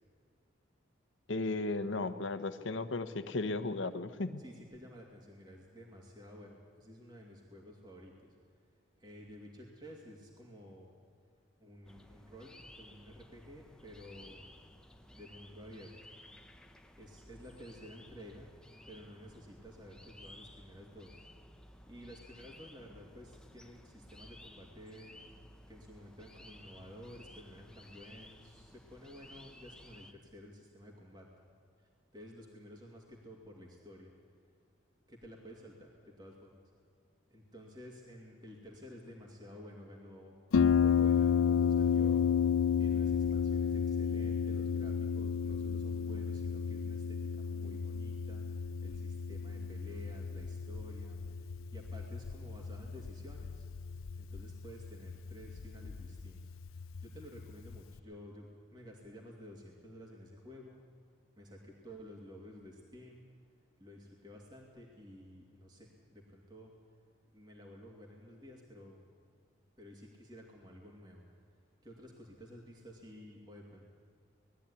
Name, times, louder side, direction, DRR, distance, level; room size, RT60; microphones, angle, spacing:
voice 1, 1.3-4.4, left 2 dB, 70° left, 11 dB, 1.1 m, -35 dB
voice 2, 4.4-8.4 9.0-10.9 11.6-12.5 12.8-14.5 15.1-15.9 17.0-18.5 18.9-21.2 21.9-25.2 25.7-31.3 31.8-34.1 35.1-36.6 37.3-40.3 40.8-42.3 42.8-53.7 54.2-56.6 57.0-60.8 61.4-63.2 63.8-66.7 67.3-69.0 69.8-71.2 71.8-73.9, equal, 20° right, -1 dB, 2.5 m, -52 dB
sound 1, 11.8-30.1, left 1 dB, 5° left, 0.9 m, -56 dB
Harp, 40.5-58.0, left 7 dB, 85° left, 0.5 m, -32 dB
20.0 x 13.5 x 9.9 m, 2.2 s
head